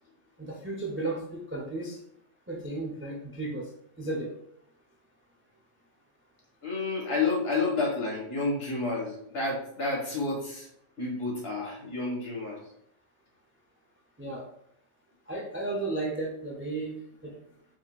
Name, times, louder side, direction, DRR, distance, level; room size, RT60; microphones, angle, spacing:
voice 1, 0.4-2.0 2.5-4.4 14.2-14.5 15.3-17.4, right 2 dB, 20° right, 0 dB, 0.3 m, -34 dB
voice 2, 6.6-10.7 11.0-12.6, left 3 dB, 50° left, -3 dB, 1.7 m, -30 dB
4.7 x 3.9 x 2.3 m, 0.72 s
omnidirectional pair, 1.3 m